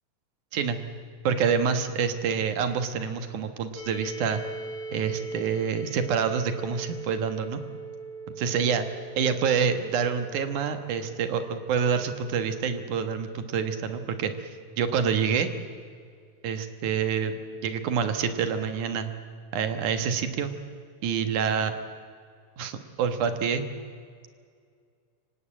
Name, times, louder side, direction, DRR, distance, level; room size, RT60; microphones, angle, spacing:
voice 1, 1.2-4.4 4.9-7.6 8.3-8.9 9.2-14.5 14.8-15.5 16.4-19.1 19.5-20.5 21.0-21.7 22.6-23.6, right 6 dB, 70° right, 8 dB, 2.8 m, -27 dB
sound 1, 3.8-15.5, right 3 dB, 80° left, 5.6 m, -42 dB
25.0 x 18.0 x 8.8 m, 2.1 s
omnidirectional pair, 3.7 m